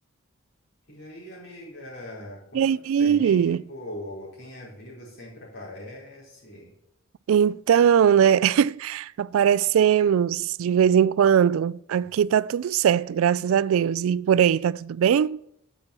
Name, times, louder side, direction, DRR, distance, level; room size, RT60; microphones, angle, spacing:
voice 1, 0.9-2.7 3.0-6.7, left 1 dB, 50° left, 5.0 m, -41 dB
voice 2, 2.5-3.6 7.3-15.4, right 8 dB, 80° right, 0.3 m, -20 dB
10.5 x 7.0 x 6.8 m
head